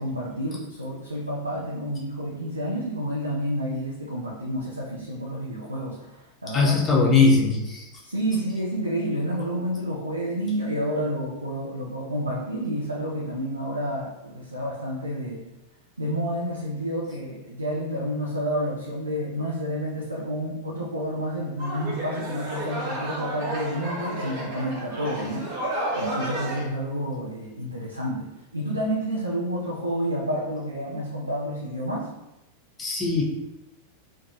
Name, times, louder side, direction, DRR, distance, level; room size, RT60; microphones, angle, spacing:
voice 1, 0.0-7.3 8.0-15.5 16.0-32.1, equal, 85° right, -4 dB, 0.4 m, -30 dB
voice 2, 6.5-7.9 32.8-33.2, left 4 dB, 20° left, -3 dB, 0.6 m, -20 dB
sound 1, 21.6-26.6, right 1 dB, 45° right, 0.8 m, -32 dB
2.4 x 2.2 x 2.6 m, 0.98 s
figure-of-eight pair, 90°, 0 cm